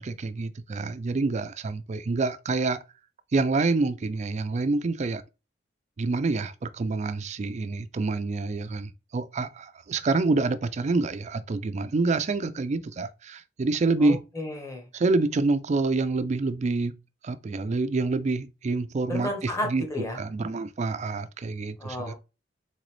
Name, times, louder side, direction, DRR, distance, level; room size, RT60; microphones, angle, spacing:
voice 1, 0.0-2.8 3.3-5.2 6.0-14.2 14.9-16.9 17.2-19.8 20.1-22.1, right 3 dB, 40° right, 0.4 m, -27 dB
voice 2, 14.0-14.9 19.1-20.2 21.8-22.1, left 1 dB, 15° left, 1.2 m, -32 dB
3.9 x 3.7 x 3.2 m
head